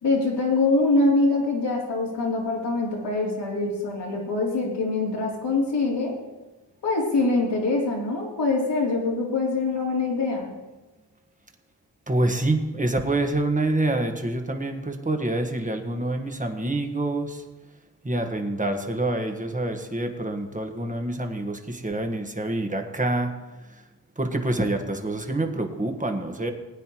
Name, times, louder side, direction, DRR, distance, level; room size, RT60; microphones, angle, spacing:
voice 1, 0.0-6.1 6.8-10.5, left 3 dB, 75° left, -3 dB, 3.1 m, -24 dB
voice 2, 12.1-17.4 18.0-23.3 23.6-23.8 24.2-26.5, right 2 dB, 20° right, 5 dB, 1.5 m, -26 dB
20.0 x 9.5 x 3.1 m, 1.1 s
cardioid pair, 65°, 41 cm